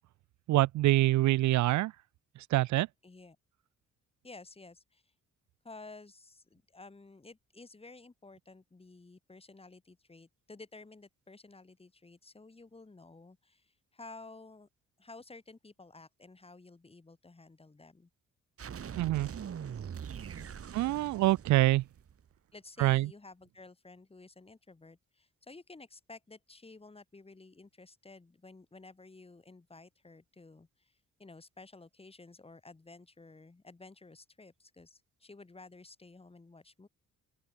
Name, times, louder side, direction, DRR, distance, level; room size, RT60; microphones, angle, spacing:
voice 1, 0.5-1.9 2.5-2.9 19.0-19.3 20.7-21.8 22.8-23.1, right 16 dB, 70° right, 0.5 m, -25 dB
voice 2, 1.2-1.7 3.0-3.4 4.2-5.0 5.6-14.7 15.0-18.1 20.4-21.1 22.5-36.9, left 3 dB, 20° left, 3.0 m, -53 dB
sound 1, 18.6-22.3, right 8 dB, 50° right, 2.9 m, -43 dB
open air
cardioid pair, 90°, 30 cm